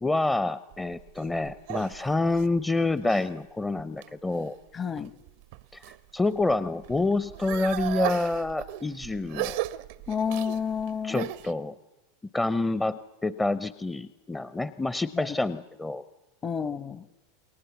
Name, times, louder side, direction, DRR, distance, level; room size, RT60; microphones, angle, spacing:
voice 1, 0.0-4.5 5.7-5.8 6.1-9.6 11.0-11.7 12.3-16.0, left 2 dB, 10° left, 14 dB, 0.8 m, -27 dB
sound 1, 0.7-3.3 3.8-4.4 5.0-6.0 6.3-11.5, right 16 dB, 65° right, 0.8 m, -36 dB
voice 2, 4.7-5.1 10.1-11.3 15.1-15.4 16.4-17.1, left 6 dB, 30° left, 16 dB, 1.1 m, -30 dB
28.0 x 22.0 x 7.1 m, 1.1 s
hypercardioid pair, 90°, 0 cm